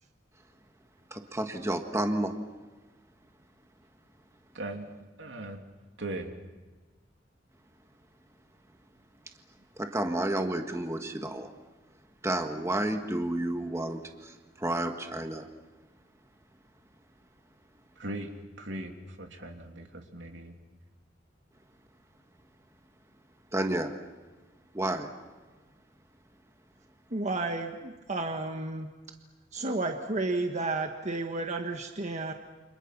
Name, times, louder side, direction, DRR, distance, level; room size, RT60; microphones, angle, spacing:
voice 1, 1.1-2.5 9.8-11.5 12.2-15.5 23.5-24.0 24.7-25.1, right 1 dB, 15° right, 5 dB, 1.5 m, -31 dB
voice 2, 4.5-4.9 5.2-5.6 6.0-6.3 18.0-18.3 18.6-20.6, right 1 dB, 75° right, 3 dB, 3.0 m, -39 dB
voice 3, 27.1-28.9 29.5-32.3, right 2 dB, 40° right, 4 dB, 1.5 m, -32 dB
29.5 x 26.0 x 6.0 m, 1.3 s
head